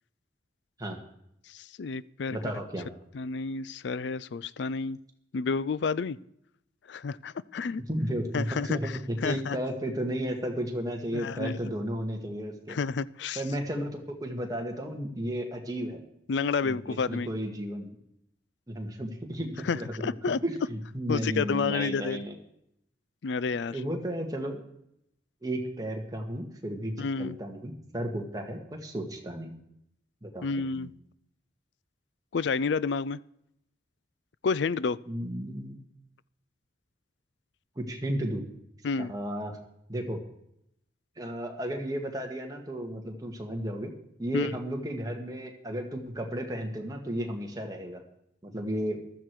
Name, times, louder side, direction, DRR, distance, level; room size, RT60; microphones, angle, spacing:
voice 1, 1.5-2.4 3.1-5.0 5.3-6.2 6.9-7.8 8.3-8.9 9.2-9.6 11.1-11.7 12.7-13.4 16.3-17.3 19.6-20.4 21.1-22.2 23.2-23.8 27.0-27.4 30.4-30.9 32.3-33.2 34.4-35.0 38.8-39.1 44.3-44.5, left 5 dB, 70° left, 20 dB, 0.4 m, -30 dB
voice 2, 2.3-2.9 7.9-12.8 13.4-16.0 16.6-17.9 18.7-19.9 20.4-22.3 23.7-24.6 25.4-26.9 27.2-29.6 30.2-30.9 35.1-35.8 37.8-38.4 39.0-39.5 39.9-40.2 41.2-43.9 44.2-48.0 48.4-49.0, equal, 20° right, 2 dB, 1.8 m, -33 dB
15.0 x 12.5 x 4.7 m, 0.76 s
head